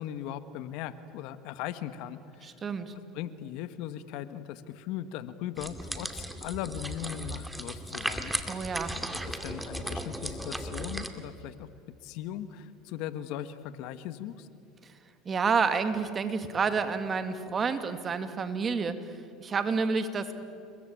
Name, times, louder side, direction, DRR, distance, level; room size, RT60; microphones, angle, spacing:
voice 1, 0.0-2.5 3.1-8.3 9.2-11.7 12.0-14.5, left 11 dB, 65° left, 12 dB, 1.4 m, -38 dB
voice 2, 2.4-2.9 8.5-9.0 15.3-19.1 19.4-20.4, right 5 dB, 30° right, 9 dB, 2.3 m, -29 dB
sound 1, 5.6-11.1, right 1 dB, 5° right, 2.4 m, -36 dB
29.5 x 22.5 x 9.0 m, 2.5 s
supercardioid pair, 100°, 0 cm